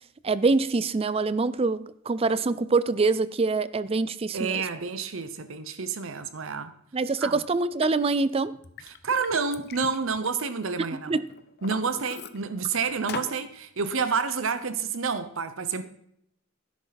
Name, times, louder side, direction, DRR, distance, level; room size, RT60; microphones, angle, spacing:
voice 1, 0.2-4.6 6.9-8.6 11.1-11.2, right 3 dB, 25° right, 17 dB, 0.4 m, -25 dB
voice 2, 4.3-6.7 7.2-7.4 8.8-11.2 11.6-15.8, right 5 dB, 60° right, 11 dB, 0.8 m, -29 dB
Liquid, 7.8-7.9 8.4-10.9 11.3-12.7 13.1-13.4, left 5 dB, 50° left, 0.8 m, -40 dB
12.5 x 11.0 x 4.0 m, 0.73 s
head